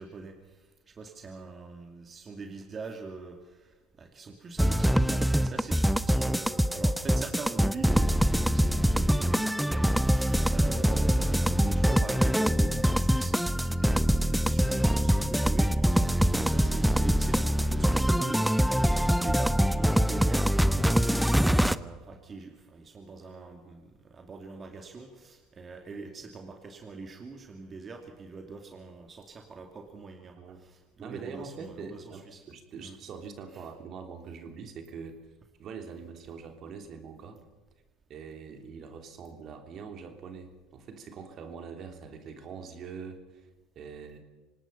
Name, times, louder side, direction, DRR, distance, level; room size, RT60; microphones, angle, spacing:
voice 1, 0.0-32.4 32.8-33.0 33.5-33.6, right 4 dB, 30° right, 3 dB, 2.5 m, -43 dB
sound 1, 4.6-21.8, equal, ahead, 0.7 m, -24 dB
voice 2, 31.0-35.2 35.6-37.4 38.1-43.5 43.7-44.2, right 5 dB, 50° right, 5 dB, 3.2 m, -43 dB
26.0 x 19.0 x 5.7 m, 1.3 s
hypercardioid pair, 80°, 0 cm